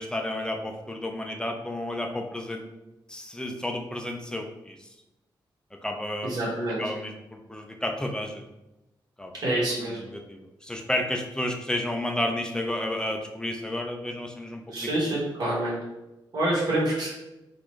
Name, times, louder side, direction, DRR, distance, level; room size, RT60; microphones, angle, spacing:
voice 1, 0.0-2.7 3.1-4.9 5.8-6.4 6.8-8.4 9.2-9.3 9.9-14.9, left 1 dB, 10° left, 3 dB, 0.3 m, -31 dB
voice 2, 6.2-6.8 9.4-10.0 14.7-15.7 16.3-17.1, right 1 dB, 50° right, -7 dB, 1.4 m, -26 dB
3.8 x 2.5 x 3.1 m, 0.99 s
wide cardioid pair, 155°, 9 cm